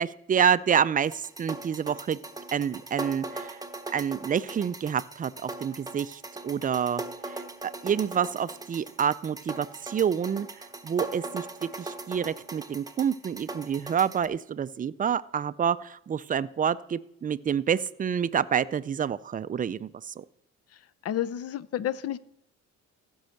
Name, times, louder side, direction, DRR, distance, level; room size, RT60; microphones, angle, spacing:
voice 1, 0.0-2.2 2.5-3.6 3.9-10.5 10.8-20.2, right 8 dB, 30° right, 16 dB, 0.4 m, -28 dB
sound 1, 1.0-14.3, right 2 dB, 10° right, 0.9 m, -40 dB
voice 2, 21.0-22.2, left 11 dB, 55° left, 18 dB, 0.6 m, -30 dB
14.5 x 5.5 x 6.4 m, 0.74 s
cardioid pair, 90°, 30 cm